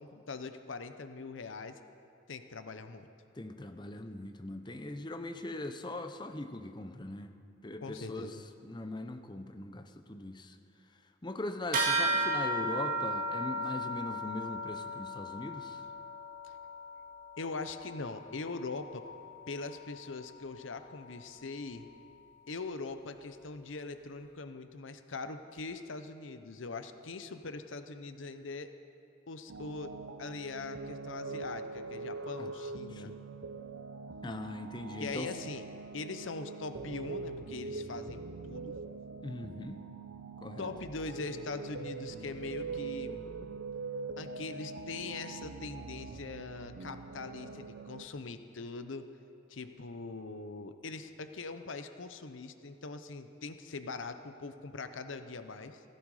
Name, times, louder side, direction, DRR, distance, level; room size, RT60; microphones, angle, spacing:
voice 1, 0.0-1.7 2.3-3.1 7.8-8.4 16.4-16.5 17.4-19.0 19.5-21.9 22.5-28.7 29.3-29.9 30.2-33.1 35.0-35.6 35.9-38.7 40.6-43.2 44.2-49.1 49.5-55.8, left 3 dB, 80° left, 9 dB, 0.8 m, -42 dB
voice 2, 3.4-7.3 7.6-8.4 8.6-10.6 11.2-15.8 32.4-32.5 32.9-33.1 34.2-35.3 39.2-39.8 40.4-40.7, left 2 dB, 20° left, 7 dB, 0.7 m, -40 dB
sound 1, 11.7-21.5, right 1 dB, 45° right, 2.0 m, -36 dB
sound 2, 29.5-48.0, right 4 dB, 80° right, 0.7 m, -43 dB
16.0 x 15.0 x 4.9 m, 2.7 s
head